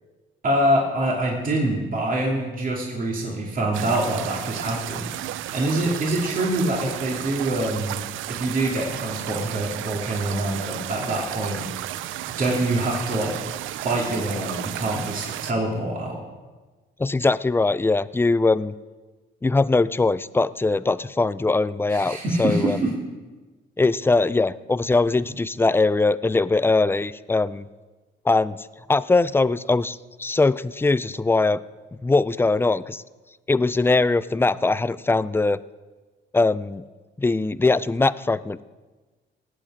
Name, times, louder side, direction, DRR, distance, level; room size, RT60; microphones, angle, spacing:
voice 1, 0.4-8.0 8.3-11.7 12.4-13.3 13.7-16.2 21.9-22.9, right 1 dB, 45° right, -2 dB, 2.6 m, -25 dB
sound 1, 3.7-15.5, right 14 dB, 80° right, 0.4 m, -33 dB
voice 2, 17.0-18.7 19.4-22.8 23.8-27.6 28.3-31.6 32.0-33.0 33.5-35.6 36.3-36.8 37.2-38.6, left 3 dB, 10° left, 17 dB, 0.4 m, -21 dB
18.5 x 7.9 x 4.9 m, 1.3 s
cardioid pair, 90°, 20 cm